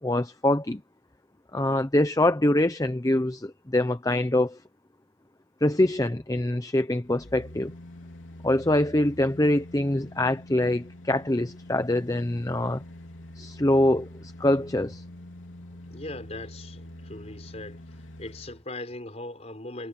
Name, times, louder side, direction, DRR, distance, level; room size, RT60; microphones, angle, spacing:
voice 1, 0.0-0.8 1.5-4.6 5.6-7.7 8.4-12.8 13.3-15.0, left 1 dB, 20° left, 0.7 m, -24 dB
sound 1, 7.0-18.6 19.0-19.1, left 1 dB, 90° left, 3.4 m, -45 dB
voice 2, 15.9-17.8 18.2-19.9, left 2 dB, 35° left, 5.5 m, -39 dB
head